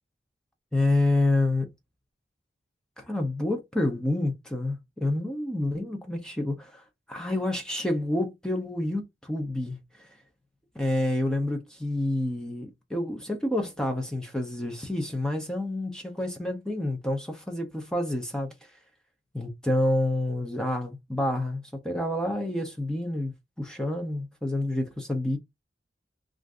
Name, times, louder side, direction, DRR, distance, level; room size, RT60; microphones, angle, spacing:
voice 1, 0.7-1.7 3.0-10.1 10.8-18.7 19.3-25.4, left 1 dB, 5° left, 0.5 m, -28 dB
2.5 x 2.4 x 3.4 m
head